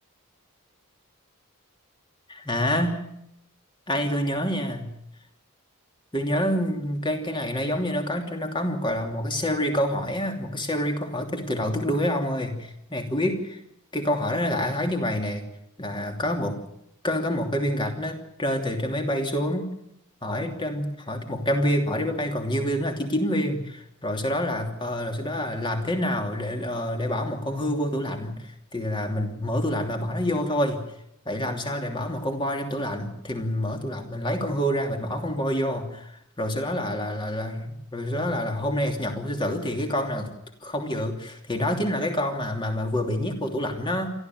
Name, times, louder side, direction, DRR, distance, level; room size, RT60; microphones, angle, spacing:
voice 1, 2.3-3.0 3.9-4.9 6.1-13.6 13.9-15.4 15.8-16.6 17.0-19.7 20.2-30.8 31.2-40.3 40.6-44.1, equal, 20° left, 4 dB, 2.9 m, -27 dB
28.0 x 13.0 x 9.3 m, 0.80 s
head